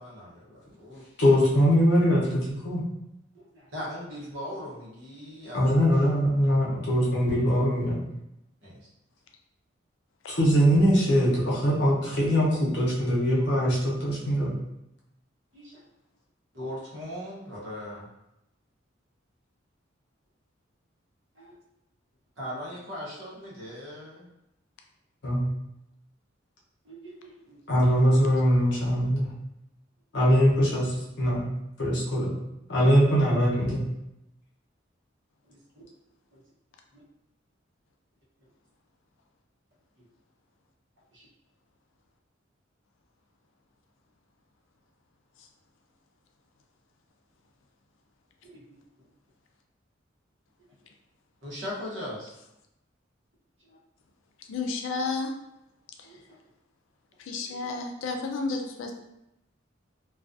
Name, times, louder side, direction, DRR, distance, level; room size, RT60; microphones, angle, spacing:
voice 1, 0.0-1.4 3.3-5.6 8.6-8.9 15.5-15.8 16.5-18.1 21.3-21.5 22.4-24.3 26.8-28.3 35.5-35.8 36.3-36.4 36.9-37.0 41.1-41.3 48.4-48.6 51.4-52.3 53.7-53.8 56.0-56.4 57.3-57.7, equal, 70° right, -5 dB, 0.9 m, -40 dB
voice 2, 1.2-2.8 5.5-8.0 10.3-14.5 25.2-25.5 27.7-29.3 30.1-31.5 31.8-32.3 32.7-33.8, equal, 60° left, -5 dB, 0.8 m, -22 dB
voice 3, 54.5-55.3 56.0-56.1 57.2-58.9, left 3 dB, 85° left, 3 dB, 0.4 m, -31 dB
2.3 x 2.3 x 2.5 m, 0.86 s
head